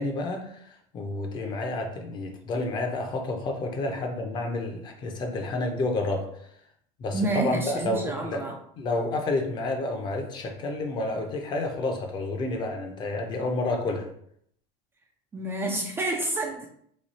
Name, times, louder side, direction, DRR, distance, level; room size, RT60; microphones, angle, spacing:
voice 1, 0.0-6.3 7.0-8.5 8.8-14.1, left 2 dB, 30° left, 3 dB, 0.6 m, -30 dB
voice 2, 7.1-8.6 15.3-16.7, right 2 dB, 15° right, 2 dB, 0.3 m, -29 dB
3.1 x 2.3 x 4.1 m, 0.68 s
supercardioid pair, 145°, 15 cm